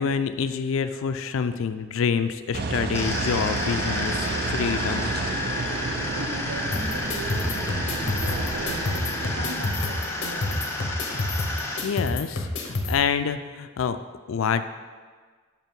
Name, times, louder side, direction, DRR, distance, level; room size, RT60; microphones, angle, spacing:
voice 1, 0.0-5.1 11.8-14.0 14.3-14.6, left 6 dB, 75° left, 10 dB, 0.4 m, -27 dB
Engine, 2.5-9.5, right 3 dB, 45° right, 0.4 m, -31 dB
sound 1, 2.9-11.8, left 2 dB, 10° left, 0.6 m, -31 dB
voice 2, 6.1-10.6, right 2 dB, 80° right, 2 dB, 0.9 m, -38 dB
sound 2, 6.7-12.9, left 2 dB, 60° left, 0.8 m, -29 dB
5.6 x 4.6 x 5.2 m, 1.5 s
head